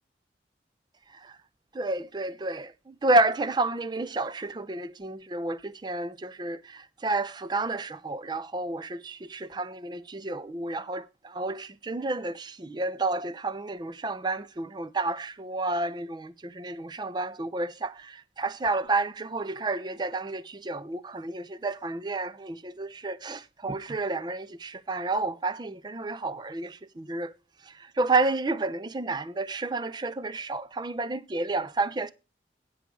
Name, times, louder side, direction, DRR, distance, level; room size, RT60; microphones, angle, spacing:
voice 1, 1.1-1.4 1.7-27.3 27.6-32.1, right 2 dB, 25° right, 0.4 m, -30 dB
9.2 x 4.7 x 6.1 m
head